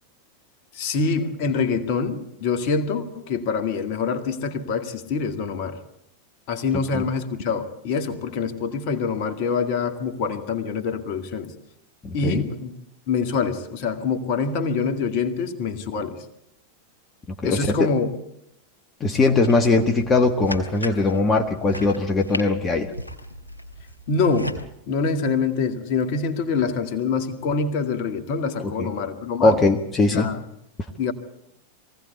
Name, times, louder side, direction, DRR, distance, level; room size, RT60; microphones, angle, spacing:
voice 1, 0.7-5.8 6.5-11.5 12.1-12.8 13.1-16.2 17.4-18.1 24.1-24.6 24.9-29.6 30.1-30.4 31.0-31.1, left 5 dB, 45° left, 8 dB, 2.1 m, -25 dB
voice 2, 12.0-12.4 17.4-17.8 19.0-22.9 28.6-28.9 29.4-30.3, left 3 dB, 20° left, 4 dB, 1.6 m, -20 dB
sound 1, 19.4-24.6, equal, 85° left, 2.5 m, -36 dB
22.5 x 17.0 x 8.4 m, 0.79 s
figure-of-eight pair, 90°, 0 cm